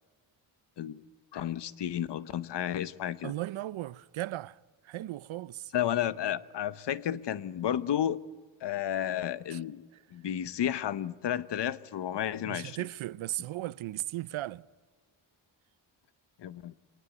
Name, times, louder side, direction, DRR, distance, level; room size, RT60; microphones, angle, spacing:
voice 1, 1.3-3.3 5.7-8.2 8.6-9.8 10.1-12.8 16.4-16.8, left 10 dB, 60° left, 0.9 m, -32 dB
voice 2, 3.2-4.6 4.8-5.7 9.5-9.6 12.4-14.6, right 15 dB, 80° right, 0.7 m, -36 dB
24.5 x 19.5 x 9.3 m
wide cardioid pair, 170°, 47 cm